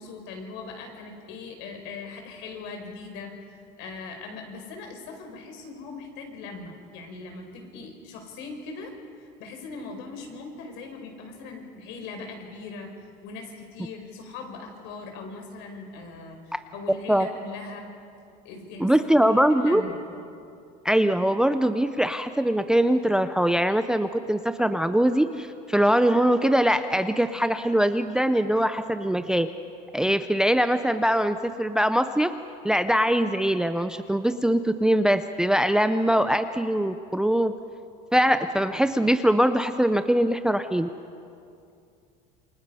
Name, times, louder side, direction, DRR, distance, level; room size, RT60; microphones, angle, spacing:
voice 1, 0.0-17.9 18.4-20.0, left 3 dB, 65° left, 4 dB, 4.8 m, -40 dB
voice 2, 18.8-19.8 20.8-29.5 29.9-32.3 32.6-37.5 38.1-40.9, right 1 dB, 5° right, 10 dB, 0.5 m, -22 dB
28.0 x 24.5 x 5.6 m, 2.5 s
cardioid pair, 155°, 20 cm